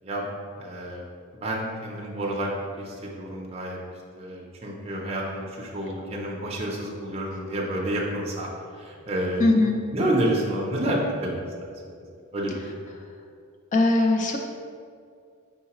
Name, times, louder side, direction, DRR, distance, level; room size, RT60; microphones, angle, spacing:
voice 1, 0.6-1.0 1.4-2.5 2.8-3.8 4.2-9.7 9.9-12.0 12.3-12.8, right 1 dB, 30° right, -3 dB, 0.5 m, -29 dB
voice 2, 9.4-9.8 13.7-14.4, left 2 dB, 35° left, 2 dB, 0.3 m, -20 dB
4.7 x 3.9 x 2.9 m, 2.3 s
head